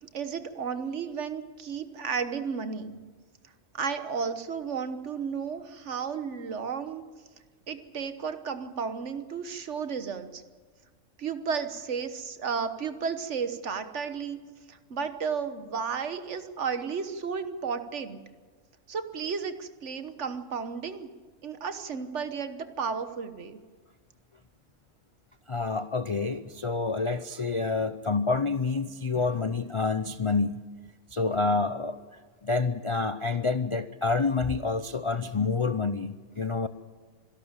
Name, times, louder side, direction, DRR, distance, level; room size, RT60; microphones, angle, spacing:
voice 1, 0.0-3.0 3.7-7.0 7.7-10.4 11.2-14.4 14.7-18.2 18.9-21.1 21.4-23.6, right 6 dB, 65° right, 10 dB, 1.5 m, -33 dB
voice 2, 25.5-30.6 31.1-32.0 32.4-36.7, left 4 dB, 40° left, 11 dB, 0.4 m, -28 dB
25.5 x 12.0 x 8.9 m, 1.5 s
omnidirectional pair, 1.4 m